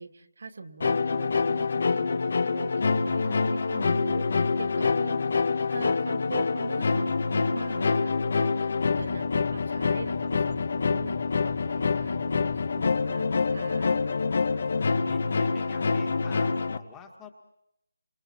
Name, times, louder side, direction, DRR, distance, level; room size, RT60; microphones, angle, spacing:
voice 1, 0.0-5.3 5.7-14.0, right 3 dB, 55° right, 6 dB, 2.3 m, -41 dB
sound 1, 0.8-16.8, left 4 dB, 45° left, 1.3 m, -26 dB
voice 2, 3.2-3.6 15.0-17.3, left 5 dB, 10° left, 3 dB, 1.8 m, -47 dB
29.5 x 27.0 x 4.4 m, 0.80 s
figure-of-eight pair, 175°, 0 cm